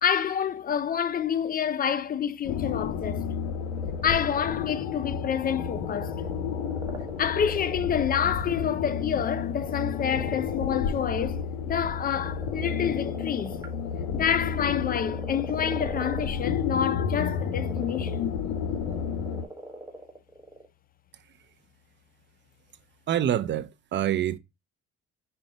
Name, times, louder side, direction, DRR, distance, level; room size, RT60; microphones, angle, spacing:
voice 1, 0.0-3.3 4.0-6.2 7.2-13.6 14.1-18.4, left 8 dB, 30° left, 0.4 m, -28 dB
sound 1, 2.4-19.4, left 7 dB, 70° left, 0.6 m, -31 dB
sound 2, 3.4-20.7, right 1 dB, 10° right, 1.1 m, -42 dB
voice 2, 23.1-24.4, right 10 dB, 40° right, 0.5 m, -26 dB
5.1 x 2.3 x 3.8 m
cardioid pair, 90°, 29 cm